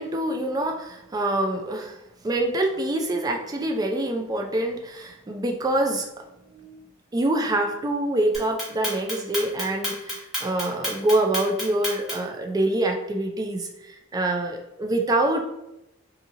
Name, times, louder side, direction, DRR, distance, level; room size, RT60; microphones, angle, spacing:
voice 1, 0.0-2.0 2.2-6.1 6.5-6.8 7.1-13.7 14.1-15.4, right 1 dB, 20° right, 3 dB, 0.3 m, -25 dB
Clock, 8.3-12.4, left 1 dB, ahead, 1.0 m, -30 dB
2.7 x 2.7 x 2.5 m, 0.88 s
head